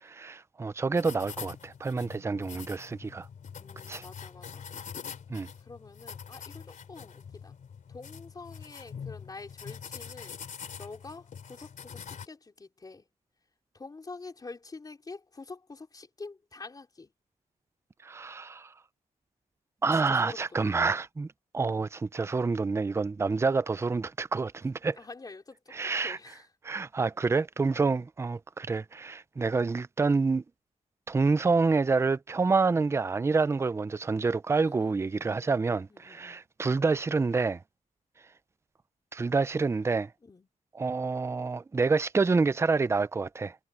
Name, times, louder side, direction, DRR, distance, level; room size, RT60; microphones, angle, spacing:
voice 1, 0.0-3.3 3.9-4.0 5.3-5.5 18.0-18.7 19.8-21.3 21.5-25.0 25.7-26.2 26.6-30.4 31.1-37.6 39.1-40.1 40.8-43.6, right 4 dB, 20° right, 0.4 m, -27 dB
sound 1, 0.9-12.3, left 7 dB, 65° left, 2.9 m, -44 dB
voice 2, 3.6-4.7 5.6-7.6 7.9-10.4 10.8-13.1 13.7-17.1 19.9-20.7 24.8-26.5 27.7-27.9 34.6-35.5 35.9-36.4 40.2-40.5, left 3 dB, 25° left, 3.9 m, -47 dB
wide cardioid pair, 170°, 14 cm